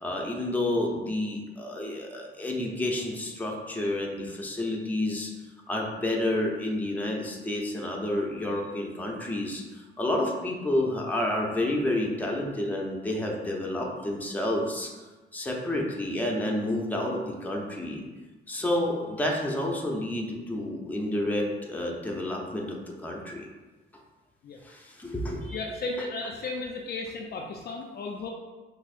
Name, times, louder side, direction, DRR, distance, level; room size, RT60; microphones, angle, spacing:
voice 1, 0.0-5.3 5.7-14.9 15.3-18.0 18.5-23.5 24.6-25.6, left 1 dB, 10° left, -1 dB, 0.6 m, -30 dB
voice 2, 25.5-28.3, left 3 dB, 55° left, 1 dB, 0.4 m, -34 dB
6.0 x 2.0 x 2.5 m, 1.2 s
cardioid pair, 90°, 20 cm